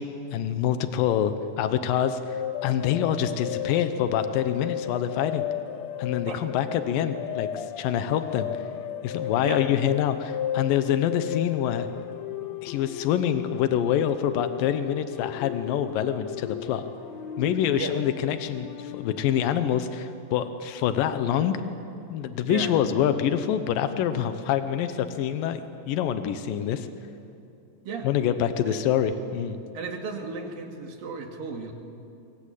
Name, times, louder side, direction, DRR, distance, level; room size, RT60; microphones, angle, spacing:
voice 1, 0.0-5.4 6.0-8.6 9.0-11.9 12.6-16.9 17.4-21.6 22.1-25.6 25.9-26.9 28.0-29.6, left 9 dB, 85° left, 10 dB, 2.7 m, -26 dB
sound 1, 2.3-19.7, left 10 dB, 65° left, 1.9 m, -35 dB
voice 2, 29.7-31.7, right 5 dB, 85° right, 2 dB, 4.0 m, -34 dB
24.5 x 22.0 x 8.4 m, 2.7 s
omnidirectional pair, 3.9 m